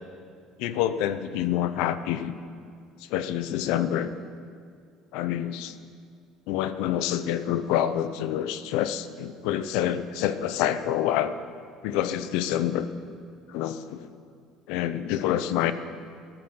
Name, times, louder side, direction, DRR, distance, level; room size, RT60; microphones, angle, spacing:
voice 1, 0.6-2.4 3.0-4.1 5.1-5.7 6.5-11.3 11.8-12.9 13.5-14.1 14.7-15.7, left 11 dB, 70° left, 13 dB, 0.8 m, -27 dB
13.5 x 11.5 x 7.9 m, 2.2 s
cardioid pair, 170°, 0 cm